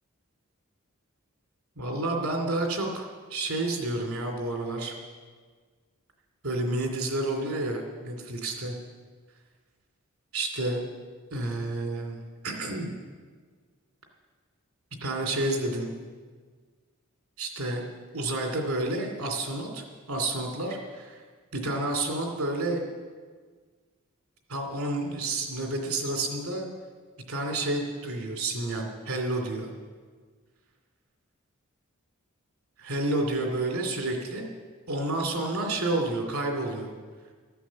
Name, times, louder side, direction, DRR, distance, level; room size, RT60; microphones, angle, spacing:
voice 1, 1.8-4.9 6.4-8.7 10.3-10.8 11.3-12.2 12.4-12.9 15.0-15.9 17.4-17.8 18.1-21.2 21.5-22.8 24.5-26.7 27.3-29.7 32.8-34.4 34.9-36.9, right 2 dB, 85° right, 2 dB, 2.6 m, -30 dB
14.5 x 11.5 x 7.5 m, 1.5 s
head